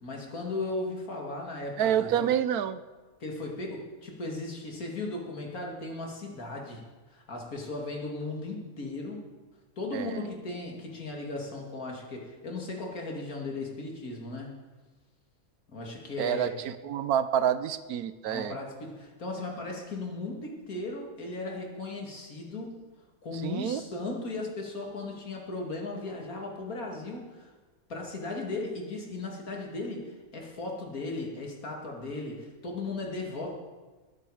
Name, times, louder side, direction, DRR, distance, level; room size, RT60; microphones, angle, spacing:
voice 1, 0.0-2.3 3.2-9.3 9.8-14.6 15.7-16.5 18.2-22.9 23.2-27.5 27.9-33.6, left 2 dB, 75° left, 0 dB, 2.9 m, -37 dB
voice 2, 1.8-2.8 9.9-10.3 16.2-18.6 23.4-23.8, right 9 dB, 90° right, 13 dB, 1.2 m, -28 dB
21.0 x 9.7 x 4.9 m, 1.3 s
omnidirectional pair, 1.5 m